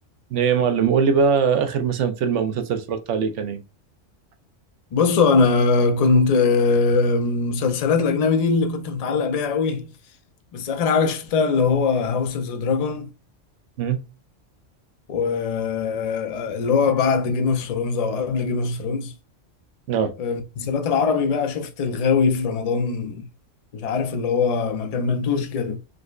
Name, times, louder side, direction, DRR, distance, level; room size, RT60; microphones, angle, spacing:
voice 1, 0.3-3.6 13.8-14.0 19.9-20.1, right 6 dB, 75° right, 0.9 m, -21 dB
voice 2, 4.9-9.9 10.5-13.1 15.1-19.1 20.2-23.2 23.7-25.8, left 4 dB, 60° left, 0.4 m, -21 dB
4.9 x 2.0 x 2.3 m
omnidirectional pair, 1.3 m